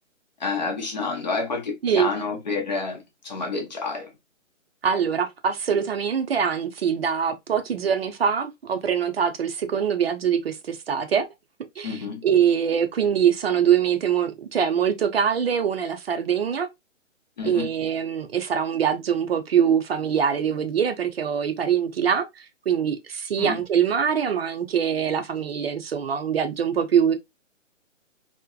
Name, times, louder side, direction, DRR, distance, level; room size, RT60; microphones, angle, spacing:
voice 1, 0.4-4.1 11.8-12.3 17.4-17.7 23.4-23.6, left 4 dB, 35° left, 0.5 m, -29 dB
voice 2, 4.8-11.3 11.8-16.7 17.4-22.3 22.7-27.2, right 8 dB, 50° right, 0.4 m, -23 dB
2.6 x 2.1 x 2.2 m
hypercardioid pair, 155°, 38 cm